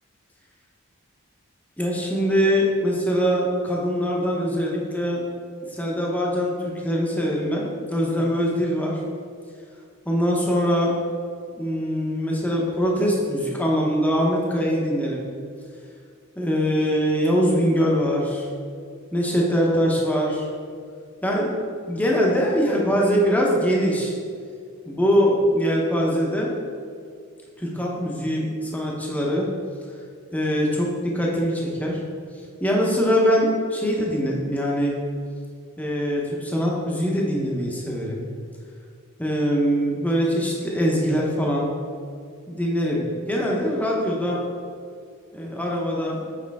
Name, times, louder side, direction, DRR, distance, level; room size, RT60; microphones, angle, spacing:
voice 1, 1.8-5.2 5.7-9.0 10.1-10.9 11.5-15.2 16.4-18.5 19.1-20.5 21.2-21.5 21.9-24.1 24.9-26.5 27.6-29.5 30.3-30.9 31.1-32.0 32.6-34.9 35.8-38.3 39.2-41.7 42.5-44.4 45.3-46.2, equal, 5° left, -2 dB, 0.8 m, -22 dB
7.5 x 5.1 x 3.5 m, 2.2 s
head